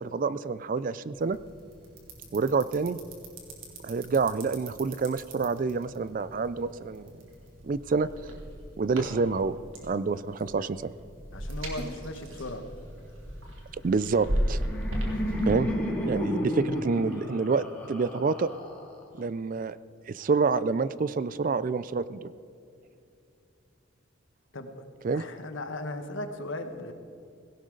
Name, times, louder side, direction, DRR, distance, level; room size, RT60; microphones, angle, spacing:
voice 1, 0.0-1.4 2.3-3.0 3.8-7.1 7.6-8.1 8.8-9.6 9.8-10.9 13.8-14.6 15.5-15.7 16.0-18.5 19.1-19.8 20.1-22.3 25.0-25.2, right 4 dB, 40° right, 16 dB, 0.4 m, -27 dB
sound 1, 1.1-15.5, equal, 75° right, 3.0 m, -37 dB
voice 2, 11.3-12.6 24.5-24.7 25.2-26.9, left 2 dB, 70° left, 7 dB, 1.2 m, -37 dB
Laughter, 14.2-19.2, left 1 dB, 5° left, 2.1 m, -32 dB
17.0 x 17.0 x 3.9 m, 2.5 s
head